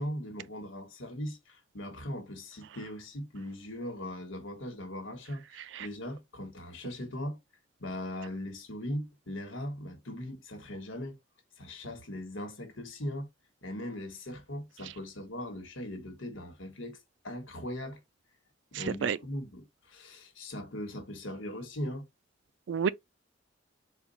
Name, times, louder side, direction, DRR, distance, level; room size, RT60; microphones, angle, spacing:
voice 1, 0.0-7.4 7.8-11.2 11.6-13.3 13.6-17.0 17.2-18.0 18.7-22.0, left 1 dB, 90° left, 1.4 m, -39 dB
voice 2, 18.7-19.2 22.7-22.9, right 6 dB, 70° right, 0.4 m, -30 dB
4.3 x 2.3 x 4.0 m
head